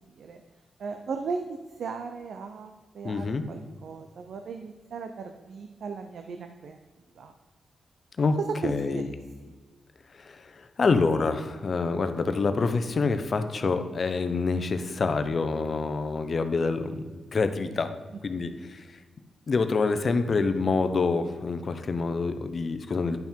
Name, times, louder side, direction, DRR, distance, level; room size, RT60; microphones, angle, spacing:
voice 1, 0.8-6.8 7.2-7.3 8.4-9.2 9.5-9.6 18.3-18.4, right 5 dB, 75° right, 6 dB, 0.6 m, -36 dB
voice 2, 3.0-3.4 8.2-8.4 8.6-9.1 10.1-17.9 18.2-19.0 19.5-23.2, left 4 dB, 50° left, 9 dB, 0.8 m, -27 dB
10.5 x 5.7 x 4.5 m, 1.4 s
cardioid pair, 85°, 0 cm